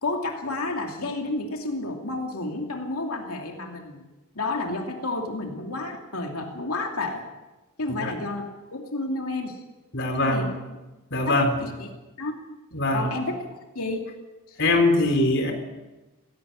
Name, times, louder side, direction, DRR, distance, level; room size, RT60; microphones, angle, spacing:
voice 1, 0.0-4.0 4.3-7.2 7.8-9.6 10.2-10.5 11.3-11.9 12.2-12.3 12.9-14.0 14.5-14.6, left 2 dB, 90° left, 2 dB, 2.7 m, -31 dB
voice 2, 9.9-10.5 11.1-11.6 12.7-13.1 14.6-15.5, left 2 dB, 55° left, 5 dB, 3.9 m, -22 dB
17.0 x 16.0 x 9.9 m, 1.1 s
head